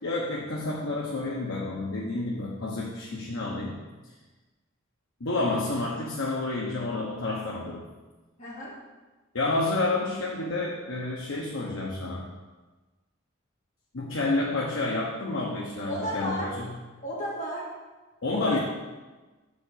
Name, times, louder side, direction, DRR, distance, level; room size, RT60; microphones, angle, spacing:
voice 1, 0.0-3.8 5.2-7.8 9.3-12.3 13.9-16.7 18.2-18.6, left 2 dB, 80° left, -3 dB, 1.0 m, -29 dB
voice 2, 8.4-8.7 15.9-16.5 17.0-17.7 18.3-18.6, equal, 35° left, -7 dB, 2.6 m, -33 dB
6.8 x 5.2 x 6.3 m, 1.2 s
head